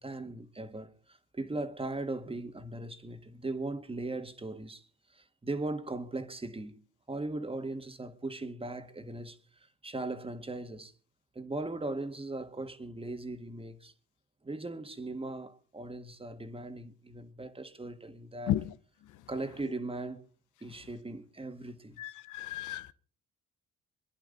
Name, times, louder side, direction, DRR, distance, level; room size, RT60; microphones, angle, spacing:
voice 1, 0.0-9.4 9.8-10.9 11.4-13.9 14.4-18.5 19.3-20.3 20.6-22.0, right 2 dB, 20° right, 1.8 m, -39 dB
voice 2, 22.0-22.9, left 13 dB, 85° left, 0.8 m, -33 dB
26.5 x 11.0 x 3.9 m
cardioid pair, 90°, 30 cm